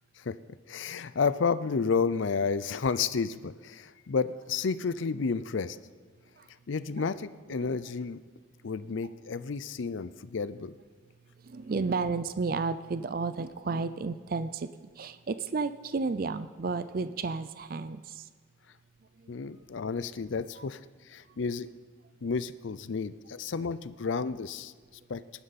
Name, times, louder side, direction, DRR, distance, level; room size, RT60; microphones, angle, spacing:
voice 1, 0.7-5.8 6.7-8.2 8.6-10.7 19.3-20.8 21.1-21.7 22.2-24.7 25.1-25.2, left 5 dB, 70° left, 15 dB, 0.5 m, -31 dB
voice 2, 11.4-14.7 15.0-18.3 19.2-19.3 20.6-20.7 23.6-23.7, right 4 dB, 45° right, 12 dB, 0.4 m, -32 dB
19.5 x 11.0 x 4.2 m, 1.5 s
head